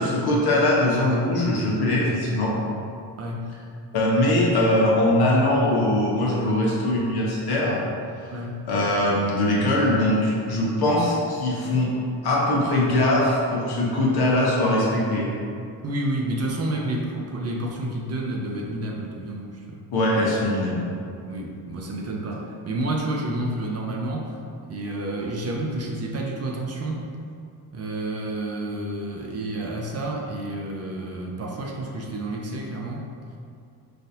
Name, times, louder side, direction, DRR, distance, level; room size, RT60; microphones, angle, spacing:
voice 1, 0.0-2.5 3.9-7.8 8.7-11.9 12.2-15.3 19.9-20.8, left 1 dB, 60° left, -4 dB, 1.0 m, -21 dB
voice 2, 3.2-3.5 8.3-8.7 15.8-19.8 21.2-24.3 24.6-27.1 27.7-33.1, right 1 dB, 35° right, -1 dB, 0.5 m, -30 dB
4.0 x 2.5 x 2.7 m, 2.4 s
supercardioid pair, 60°, 43 cm